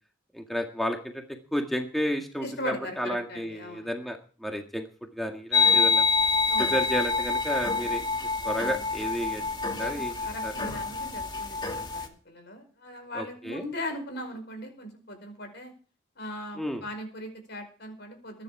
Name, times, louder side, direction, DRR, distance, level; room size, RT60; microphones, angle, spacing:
voice 1, 0.3-1.2 1.5-4.9 5.1-6.1 6.6-8.0 8.4-10.2 10.4-10.5 13.1-13.6 16.6-16.8, equal, ahead, 3 dB, 1.8 m, -32 dB
voice 2, 2.4-3.9 6.5-6.7 9.7-15.7 16.2-18.4, left 1 dB, 60° left, 6 dB, 5.1 m, -39 dB
sound 1, 5.5-12.1, left 4 dB, 25° left, 2.3 m, -26 dB
22.5 x 10.5 x 4.9 m, 0.39 s
head